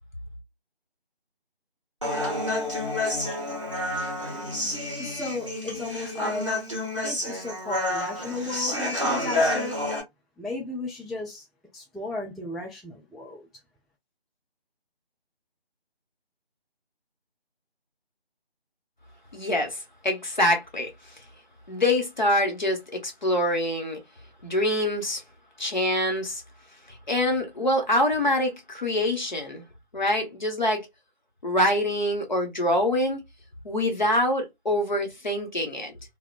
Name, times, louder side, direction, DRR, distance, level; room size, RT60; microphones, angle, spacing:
Human voice, 2.0-10.0, left 1 dB, 30° right, 0.7 m, -29 dB
voice 1, 5.0-6.5 7.0-9.8 10.4-11.5 11.7-13.5, left 2 dB, ahead, 0.3 m, -34 dB
voice 2, 19.3-20.9 21.7-24.0 24.4-25.2 25.6-26.4 26.9-29.6 29.9-30.9 31.4-33.2 33.6-36.0, left 1 dB, 45° left, 0.8 m, -25 dB
2.6 x 2.1 x 2.3 m
figure-of-eight pair, 180°, 31 cm